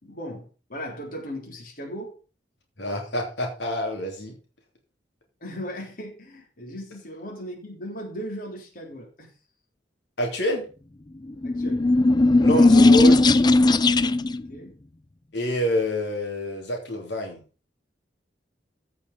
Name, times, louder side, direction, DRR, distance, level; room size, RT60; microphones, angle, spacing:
voice 1, 0.0-2.2 5.4-9.3 11.4-11.9 14.3-14.7, equal, 55° left, 3.4 m, -37 dB
voice 2, 2.8-4.3 10.2-10.7 12.4-13.2 15.3-17.4, equal, 85° left, 3.1 m, -27 dB
sound 1, 11.3-14.4, left 2 dB, 25° left, 0.5 m, -17 dB
15.5 x 5.6 x 5.3 m
head